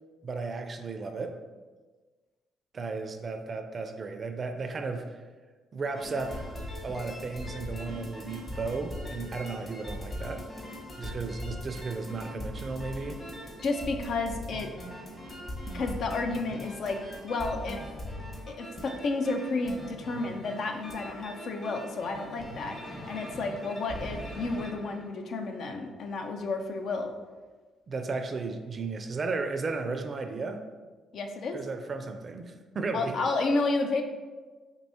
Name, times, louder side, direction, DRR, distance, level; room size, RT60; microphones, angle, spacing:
voice 1, 0.2-1.4 2.7-5.2 5.7-10.4 11.0-13.2 27.9-30.7 31.5-33.1, right 4 dB, 45° right, 6 dB, 0.4 m, -34 dB
sound 1, 5.9-25.1, equal, 30° left, 1.1 m, -41 dB
voice 2, 13.6-14.7 15.7-17.8 18.5-27.2 31.1-31.6 32.9-34.0, left 3 dB, 65° left, 5 dB, 0.4 m, -31 dB
4.5 x 2.6 x 2.7 m, 1.4 s
supercardioid pair, 60°, 0 cm